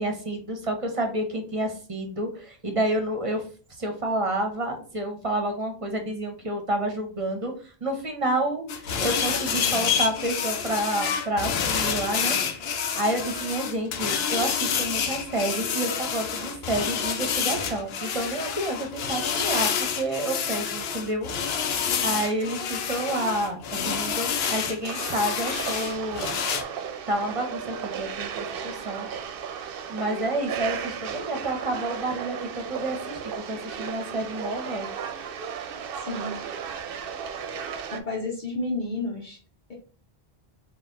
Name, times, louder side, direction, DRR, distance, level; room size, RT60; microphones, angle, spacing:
voice 1, 0.0-3.4 3.7-12.4 12.9-26.4 27.1-29.1 29.9-33.2 33.5-34.9, right 1 dB, 35° right, 4 dB, 0.7 m, -29 dB
sound 1, 8.7-26.6, left 7 dB, 80° left, 0.8 m, -28 dB
sound 2, 24.8-38.0, right 7 dB, 65° right, 0.7 m, -35 dB
voice 2, 36.0-36.4 37.9-39.4, left 2 dB, 55° left, -2 dB, 0.9 m, -31 dB
4.2 x 2.3 x 3.7 m, 0.39 s
omnidirectional pair, 1.0 m